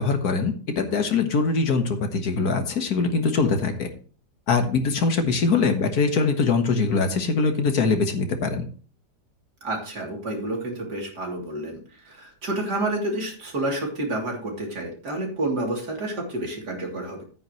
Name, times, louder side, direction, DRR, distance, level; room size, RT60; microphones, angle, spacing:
voice 1, 0.0-3.9 4.5-8.7, left 4 dB, 65° left, 6 dB, 1.8 m, -22 dB
voice 2, 9.6-17.2, right 2 dB, 75° right, 0 dB, 3.7 m, -29 dB
11.0 x 9.2 x 3.1 m, 0.40 s
omnidirectional pair, 1.8 m